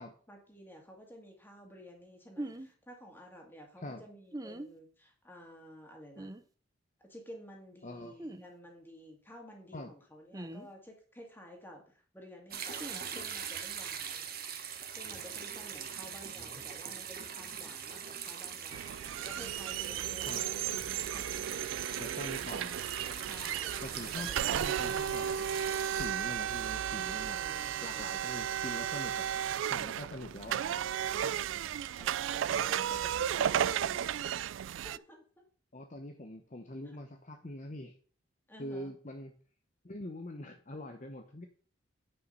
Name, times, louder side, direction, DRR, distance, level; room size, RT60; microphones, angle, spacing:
voice 1, 0.3-6.3 7.1-14.3 15.0-18.9 19.2-21.8 23.2-24.5 27.3-28.1 29.2-29.6 30.0-31.4 32.0-34.3 34.8-35.2 38.5-38.9, equal, 10° left, 1 dB, 2.3 m, -52 dB
sound 1, 2.4-2.7 4.3-4.7 6.2-6.4 8.2-8.4 10.3-10.7 12.8-13.0, right 1 dB, 20° right, 0.6 m, -41 dB
voice 2, 7.8-8.1 9.7-9.9 16.4-16.5 16.9-17.0 20.2-20.4 22.0-22.8 23.8-25.3 25.9-27.4 27.8-29.3 29.7-30.6 35.7-37.9 38.6-39.3 39.8-41.5, left 1 dB, 40° left, 4 dB, 0.8 m, -43 dB
sound 2, 12.5-26.1, right 8 dB, 50° right, 1.2 m, -42 dB
sound 3, 18.7-35.0, right 9 dB, 75° right, 0.3 m, -34 dB
9.7 x 5.6 x 5.5 m, 0.42 s
head